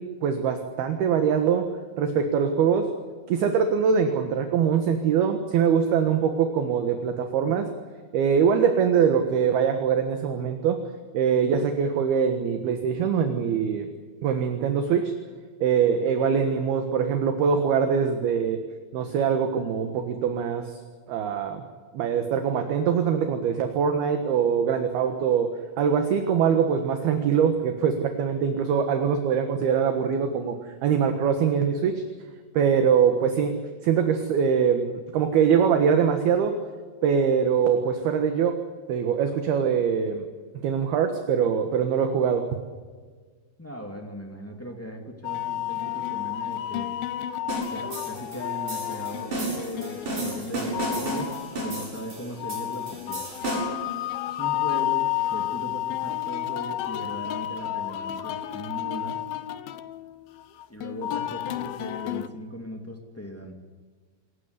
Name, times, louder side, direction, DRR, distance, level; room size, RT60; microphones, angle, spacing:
voice 1, 0.0-1.7 2.0-2.9 3.3-7.7 8.1-10.8 11.1-13.9 14.2-15.1 15.6-18.6 18.9-20.8 21.1-21.6 21.9-30.6 30.8-32.0 32.5-36.6 37.0-38.6 38.9-40.2 40.6-42.5, right 7 dB, 65° right, 6 dB, 3.0 m, -23 dB
voice 2, 43.6-46.9 47.7-53.2 54.2-59.2 60.7-63.5, equal, 15° left, 2 dB, 0.5 m, -38 dB
sound 1, 45.2-62.3, left 12 dB, 75° left, 2.2 m, -31 dB
sound 2, 47.5-53.9, right 1 dB, 40° right, 9.3 m, -33 dB
26.5 x 15.0 x 9.8 m, 1.5 s
omnidirectional pair, 5.5 m